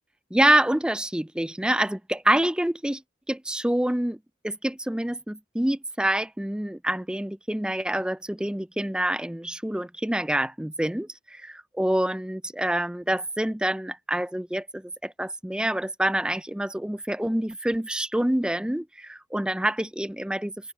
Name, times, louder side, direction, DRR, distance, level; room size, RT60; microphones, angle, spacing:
voice 1, 0.3-3.0 3.3-4.2 4.4-20.5, right 1 dB, 5° right, 0.3 m, -26 dB
head